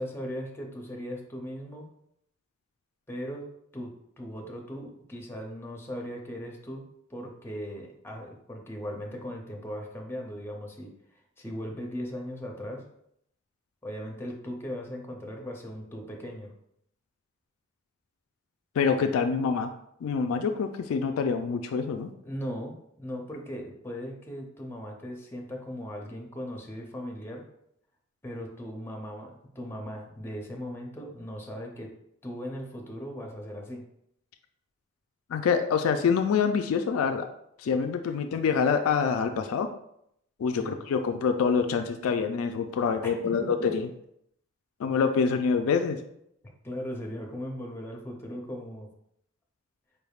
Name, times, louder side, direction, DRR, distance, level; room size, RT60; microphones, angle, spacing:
voice 1, 0.0-1.9 3.1-3.4 3.7-3.9 4.2-6.8 7.1-12.8 13.8-16.5 22.2-27.4 28.2-31.9 32.2-33.8 38.0-38.1 40.5-40.8 43.0-43.7 46.6-48.9, equal, 10° left, 1 dB, 0.6 m, -38 dB
voice 2, 18.8-19.7 20.0-22.1 35.3-37.3 37.6-39.7 40.4-43.7 44.8-46.0, left 6 dB, 75° left, 6 dB, 0.3 m, -26 dB
4.5 x 3.4 x 2.3 m, 0.74 s
head